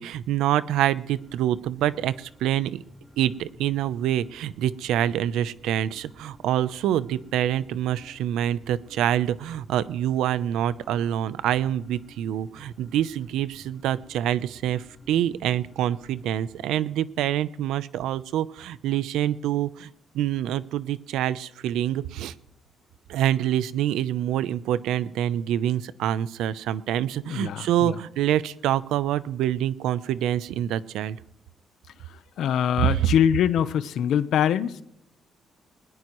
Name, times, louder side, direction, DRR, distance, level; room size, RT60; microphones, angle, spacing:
voice 1, 0.0-2.8 3.2-19.9 20.1-22.3 23.1-31.2, right 11 dB, 85° right, 0.6 m, -26 dB
sound 1, 1.1-16.7, right 1 dB, ahead, 5.9 m, -53 dB
voice 2, 27.2-28.0 32.1-34.8, left 9 dB, 75° left, 0.9 m, -24 dB
20.5 x 20.0 x 3.1 m
cardioid pair, 90°, 0 cm